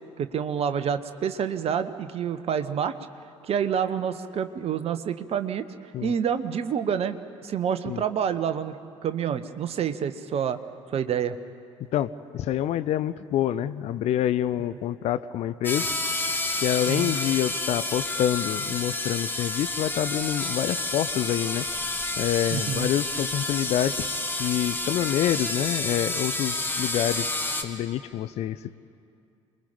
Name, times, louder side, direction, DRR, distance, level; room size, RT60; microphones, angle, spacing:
voice 1, 0.2-2.9 3.4-5.6 6.0-8.8 9.0-10.6 10.9-11.4 16.9-17.2 22.5-22.9, right 8 dB, 40° right, 11 dB, 1.1 m, -28 dB
voice 2, 11.9-15.9 16.6-21.6 22.2-27.3 27.6-28.8, left 11 dB, 45° left, 14 dB, 0.6 m, -27 dB
sound 1, 15.6-27.6, left 2 dB, 15° left, 2.0 m, -29 dB
28.0 x 21.0 x 5.3 m, 2.4 s
figure-of-eight pair, 55°, 15 cm